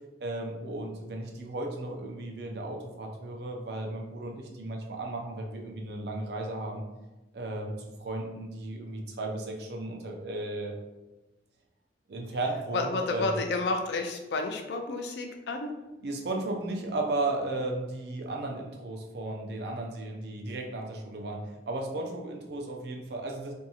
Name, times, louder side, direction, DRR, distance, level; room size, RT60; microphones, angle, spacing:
voice 1, 0.2-6.8 7.3-7.7 8.0-10.7 12.1-13.3 16.0-23.5, right 2 dB, 70° right, 1 dB, 0.5 m, -35 dB
voice 2, 12.7-15.7, left 3 dB, 75° left, 4 dB, 0.4 m, -30 dB
2.8 x 2.6 x 2.3 m, 1.0 s
head